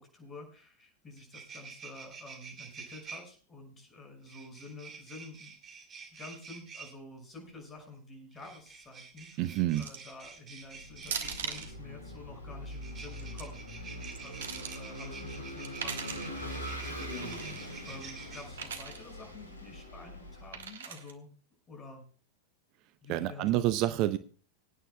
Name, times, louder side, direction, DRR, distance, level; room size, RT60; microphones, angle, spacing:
voice 1, 0.0-5.6 6.1-21.3 21.7-22.0 23.0-23.7, left 2 dB, 20° left, 3 dB, 6.1 m, -49 dB
sound 1, 0.8-0.9 1.1-3.2 4.3-6.9 8.3-11.7 12.7-18.4, right 5 dB, 25° right, 2.6 m, -48 dB
voice 2, 9.4-9.8 23.1-24.2, right 14 dB, 40° right, 13 dB, 0.6 m, -28 dB
sound 2, 9.8-10.1 11.0-11.7 13.1-13.4 14.0-14.8 15.6-16.3 17.2-17.6 18.5-19.0 20.5-21.1, right 7 dB, 60° right, 1.4 m, -39 dB
Vehicle / Engine, 10.8-20.6, equal, 80° left, 2.4 m, -43 dB
25.0 x 9.2 x 2.3 m, 0.41 s
figure-of-eight pair, 90°, 0 cm